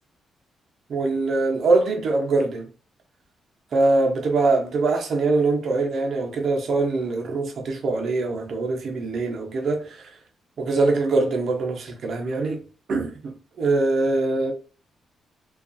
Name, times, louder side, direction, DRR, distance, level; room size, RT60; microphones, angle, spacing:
voice 1, 0.9-2.6 3.7-10.0 10.6-12.6 12.9-14.5, right 3 dB, 60° right, 0.6 m, -23 dB
2.4 x 2.3 x 2.5 m
cardioid pair, 90°, 0 cm